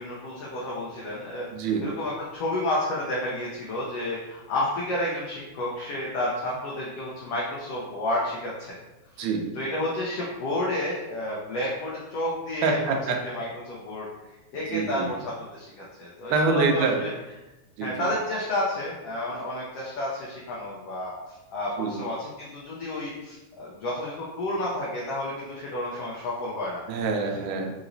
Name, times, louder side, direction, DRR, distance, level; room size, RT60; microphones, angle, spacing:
voice 1, 0.0-1.5 1.8-8.7 9.1-9.3 9.5-12.9 13.2-14.1 14.5-17.1 17.8-26.8, left 1 dB, 85° left, -5 dB, 1.3 m, -31 dB
voice 2, 1.5-1.8 9.2-9.4 12.6-13.2 14.7-15.1 16.3-17.0 17.8-18.1 21.8-22.0 26.9-27.7, right 4 dB, 85° right, 3 dB, 2.1 m, -25 dB
5.1 x 2.9 x 2.6 m, 1.0 s
omnidirectional pair, 3.5 m